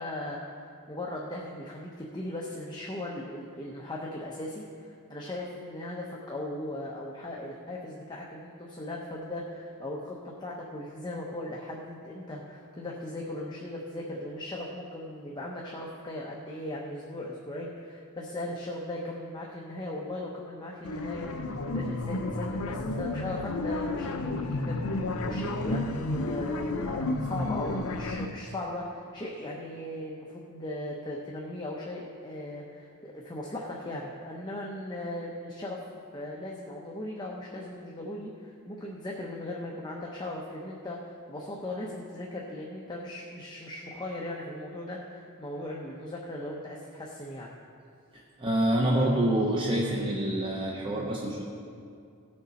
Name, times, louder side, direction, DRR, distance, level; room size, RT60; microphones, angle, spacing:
voice 1, 0.0-47.5, left 1 dB, 20° left, -3 dB, 0.8 m, -38 dB
sound 1, 20.8-28.3, left 2 dB, 70° left, 0.6 m, -31 dB
voice 2, 48.1-51.4, right 1 dB, 25° right, -2 dB, 0.8 m, -27 dB
17.5 x 6.6 x 4.1 m, 2.4 s
head